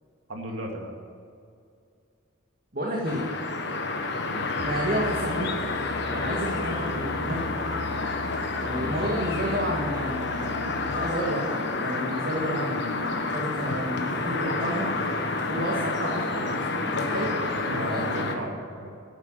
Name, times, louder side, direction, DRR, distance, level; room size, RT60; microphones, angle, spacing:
voice 1, 0.3-0.9 4.2-4.6 8.7-9.1 17.5-18.9, right 1 dB, 75° right, 1 dB, 2.3 m, -36 dB
voice 2, 2.7-3.3 4.6-5.5 6.1-7.5 8.6-14.9 15.5-17.3 17.7-18.4, equal, 45° right, -3 dB, 2.0 m, -31 dB
sound 1, 3.0-18.3, left 3 dB, 60° left, 1.3 m, -29 dB
Musical instrument, 4.5-11.3, left 4 dB, 85° left, 0.7 m, -39 dB
11.5 x 9.0 x 8.9 m, 2.4 s
head